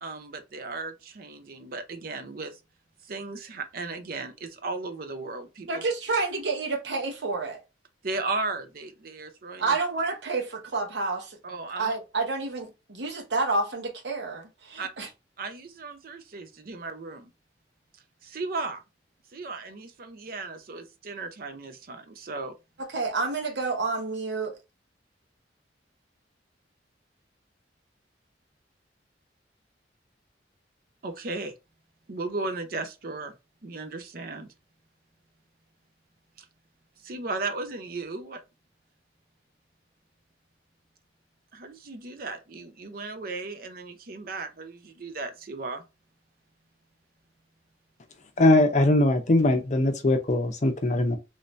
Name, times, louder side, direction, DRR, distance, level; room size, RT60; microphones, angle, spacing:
voice 1, 0.0-2.5 3.1-5.7 8.0-9.6 11.4-11.9 14.8-14.9 15.4-17.3 18.3-18.8 19.3-22.5 31.0-31.5 32.1-33.3 33.6-34.5 37.0-38.4 41.5-45.8, right 3 dB, 50° right, 0.5 m, -35 dB
voice 2, 5.7-7.6 9.6-11.4 11.8-15.1 22.8-24.6, right 3 dB, 70° right, 0.9 m, -29 dB
voice 3, 48.4-51.2, left 2 dB, 40° left, 0.6 m, -21 dB
3.2 x 2.7 x 3.1 m
head